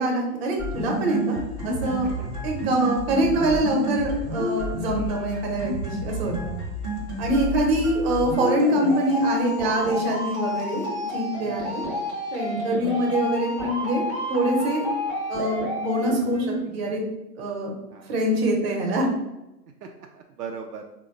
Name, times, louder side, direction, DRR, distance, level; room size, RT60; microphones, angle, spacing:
voice 1, 0.0-2.1 2.4-6.6 7.2-11.9 12.3-14.8 15.3-17.0 17.4-17.7 18.1-19.1, right 1 dB, 40° right, 0 dB, 0.9 m, -24 dB
sound 1, 0.6-16.6, left 1 dB, 10° right, 0.6 m, -30 dB
voice 2, 5.0-5.3 11.4-11.7 17.9-18.1 19.8-20.8, right 6 dB, 70° right, 2 dB, 0.5 m, -39 dB
3.9 x 2.2 x 2.5 m, 0.96 s
hypercardioid pair, 125°, 50 cm